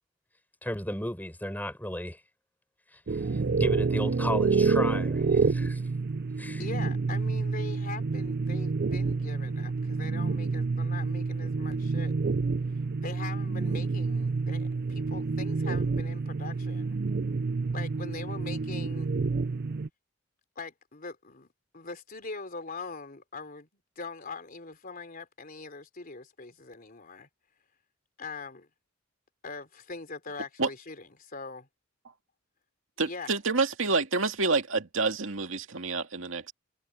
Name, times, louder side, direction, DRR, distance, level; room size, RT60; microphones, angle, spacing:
voice 1, 0.6-2.2 2.9-5.8 6.4-6.6, left 1 dB, 10° left, 7.2 m, -35 dB
sound 1, 3.1-19.9, right 4 dB, 50° right, 0.5 m, -28 dB
voice 2, 6.6-12.1 13.0-17.0 17.7-19.2 20.6-21.5 21.7-27.3 28.2-28.7 29.4-31.7 33.1-33.3, left 3 dB, 45° left, 3.6 m, -42 dB
voice 3, 33.0-36.5, right 3 dB, 75° right, 2.4 m, -28 dB
head